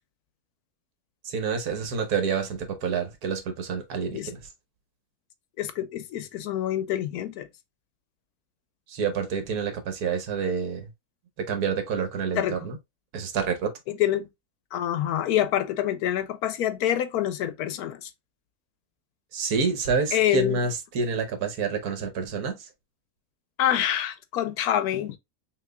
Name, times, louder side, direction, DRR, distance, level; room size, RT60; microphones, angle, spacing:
voice 1, 1.2-4.4 8.9-10.9 11.4-12.8 13.1-13.7 19.3-22.7, right 5 dB, 75° right, 1.4 m, -28 dB
voice 2, 5.6-7.5 12.4-12.6 13.9-14.3 14.7-18.1 20.1-20.6 23.6-25.2, left 11 dB, 75° left, 1.1 m, -26 dB
6.0 x 2.8 x 2.2 m
omnidirectional pair, 1.7 m